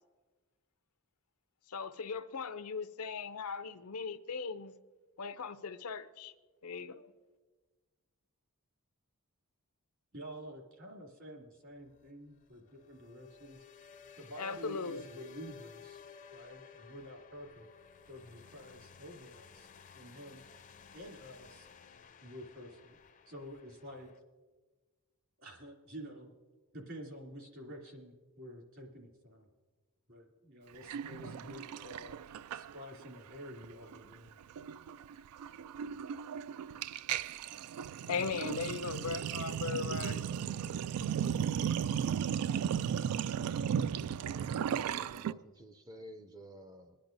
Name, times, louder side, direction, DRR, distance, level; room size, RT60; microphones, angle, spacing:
voice 1, 1.7-4.7 5.2-6.3 6.6-7.1 14.4-15.0 38.1-40.3, left 5 dB, 80° left, 11 dB, 0.6 m, -38 dB
voice 2, 10.1-13.6 14.2-16.0 16.3-17.7 18.1-19.7 19.9-20.4 20.9-21.7 22.2-23.0 23.3-24.1 25.4-26.3 26.7-29.5 30.1-32.2 32.5-34.4, equal, 60° right, -2 dB, 2.7 m, -49 dB
sound 1, 11.8-24.2, left 6 dB, 35° left, 0.5 m, -56 dB
Sink (filling or washing), 30.9-33.1 33.4-33.7 33.9-45.3, right 8 dB, 90° right, 0.3 m, -35 dB
voice 3, 44.7-47.0, equal, 15° right, 5 dB, 0.4 m, -52 dB
23.0 x 10.5 x 2.6 m, 1.3 s
head